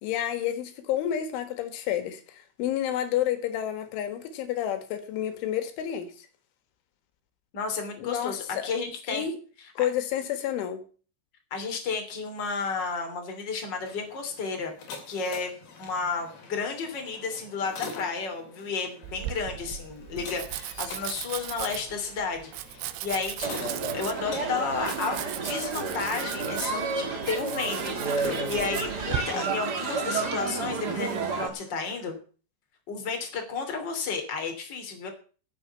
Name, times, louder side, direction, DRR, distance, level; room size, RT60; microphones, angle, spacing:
voice 1, 0.0-6.3 8.0-8.7 9.1-9.3 9.8-10.8, left 11 dB, 85° left, 4.0 m, -30 dB
voice 2, 7.5-9.3 11.5-14.7 15.1-15.5 15.8-28.0 28.2-32.2 32.9-35.1, left 5 dB, 25° left, 3.0 m, -32 dB
sound 1, 13.6-32.1, left 4 dB, 60° left, 4.7 m, -45 dB
Domestic sounds home sounds, 19.0-29.2, right 14 dB, 90° right, 3.3 m, -38 dB
sound 2, 23.4-31.5, right 4 dB, 60° right, 1.0 m, -31 dB
13.5 x 7.5 x 8.1 m
omnidirectional pair, 5.4 m